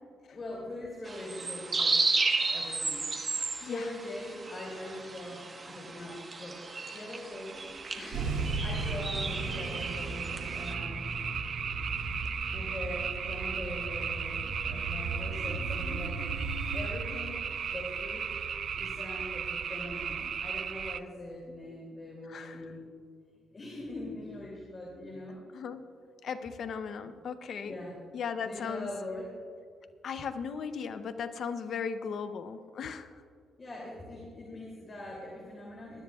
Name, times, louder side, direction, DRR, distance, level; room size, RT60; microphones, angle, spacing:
voice 1, 0.3-2.2 2.5-3.1 3.4-7.6 7.9-11.0 12.3-16.2 16.7-22.9 23.5-25.4 27.6-27.9 28.4-29.3 33.6-36.0, left 1 dB, 35° left, -3 dB, 2.7 m, -42 dB
sound 1, 1.1-10.7, right 3 dB, 30° right, 1.2 m, -34 dB
voice 2, 3.6-4.0 22.2-22.7 25.5-25.8 26.2-27.8 28.1-28.9 30.0-33.1, left 6 dB, 60° left, 10 dB, 0.6 m, -37 dB
sound 2, 7.3-21.0, right 7 dB, 55° right, 0.4 m, -36 dB
sound 3, 8.1-16.9, right 3 dB, 85° right, 2.8 m, -37 dB
20.5 x 12.0 x 2.3 m, 2.1 s
cardioid pair, 90°, 0 cm